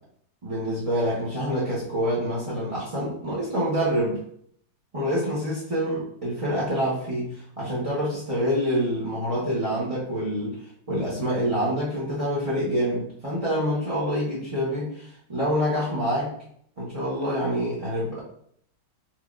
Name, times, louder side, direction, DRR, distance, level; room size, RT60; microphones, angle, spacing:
voice 1, 0.4-4.2 4.9-10.6 10.9-16.3 16.8-18.2, equal, 30° right, -7 dB, 0.7 m, -26 dB
4.5 x 3.5 x 2.4 m, 0.66 s
omnidirectional pair, 2.1 m